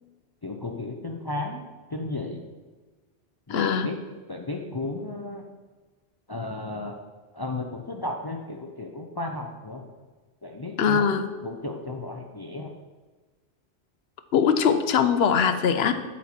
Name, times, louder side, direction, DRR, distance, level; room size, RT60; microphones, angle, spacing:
voice 1, 0.4-1.6 1.9-2.4 3.5-4.0 4.3-5.5 6.3-7.0 7.3-9.8 10.4-12.7, left 2 dB, 30° left, 2 dB, 0.4 m, -34 dB
voice 2, 3.5-3.9 10.8-11.3 14.3-15.9, left 7 dB, 70° left, 9 dB, 0.9 m, -21 dB
12.5 x 4.3 x 4.3 m, 1.3 s
omnidirectional pair, 1.1 m